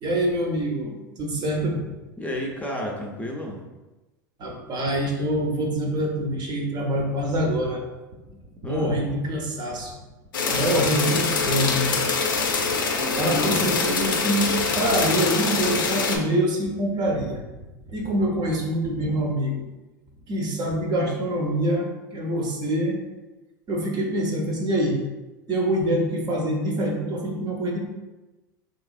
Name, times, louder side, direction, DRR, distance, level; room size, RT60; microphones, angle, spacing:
voice 1, 0.0-1.8 4.4-7.8 8.6-9.9 10.5-11.9 13.2-17.4 17.9-19.6 20.3-23.0 23.7-25.0 25.5-27.8, right 1 dB, 40° right, 1 dB, 0.8 m, -25 dB
voice 2, 2.2-3.6 8.6-8.9 13.3-13.6, left 1 dB, 15° left, -1 dB, 0.6 m, -31 dB
sound 1, 10.3-16.2, left 4 dB, 85° left, 0.5 m, -24 dB
3.3 x 3.0 x 2.5 m, 1.1 s
hypercardioid pair, 90°, 11 cm